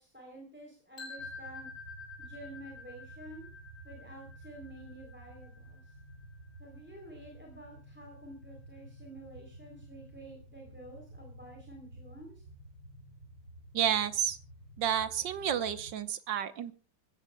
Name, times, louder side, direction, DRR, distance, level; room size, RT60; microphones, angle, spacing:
voice 1, 0.0-1.7 2.2-3.5 3.8-6.0 6.6-12.4, right 1 dB, 5° right, 0 dB, 3.2 m, -50 dB
sound 1, 1.0-6.9, left 4 dB, 30° left, 4.1 m, -49 dB
sound 2, 1.2-15.9, right 1 dB, 50° right, 1.8 m, -52 dB
voice 2, 13.7-14.4 14.8-16.7, right 9 dB, 75° right, 12 dB, 1.6 m, -30 dB
25.0 x 15.5 x 2.2 m, 0.34 s
omnidirectional pair, 2.1 m